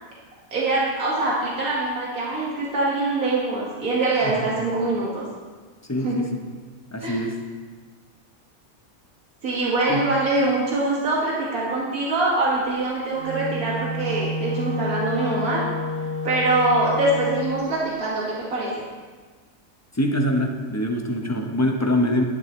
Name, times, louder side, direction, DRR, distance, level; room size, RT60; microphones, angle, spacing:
voice 1, 0.5-5.2 6.0-6.3 7.0-7.2 9.4-15.6 16.2-18.9, right 2 dB, 75° right, -5 dB, 2.2 m, -24 dB
voice 2, 4.2-4.6 5.9-6.4 6.9-7.4 9.9-10.0 19.9-22.2, left 1 dB, 15° left, 2 dB, 0.5 m, -24 dB
Wind instrument woodwind instrument, 13.1-17.7, left 1 dB, 45° right, 0.7 m, -29 dB
11.5 x 10.5 x 3.1 m, 1.4 s
omnidirectional pair, 1.5 m